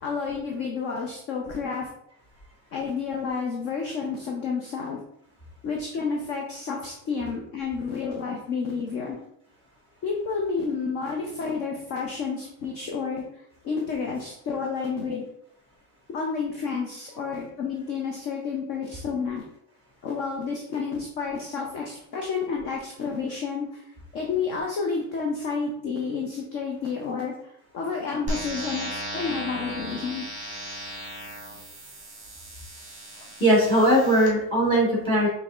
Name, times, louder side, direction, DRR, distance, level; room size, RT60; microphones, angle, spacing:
voice 1, 0.0-1.9 2.7-5.0 5.6-9.2 10.0-15.2 16.1-19.4 20.0-23.8 24.1-27.3 27.7-30.3, left 5 dB, 35° left, 0 dB, 0.4 m, -30 dB
sound 1, 28.3-34.3, equal, 15° right, 1.1 m, -36 dB
voice 2, 33.4-35.3, equal, 10° left, -5 dB, 1.2 m, -20 dB
5.2 x 3.1 x 2.3 m, 0.77 s
cardioid pair, 170°, 46 cm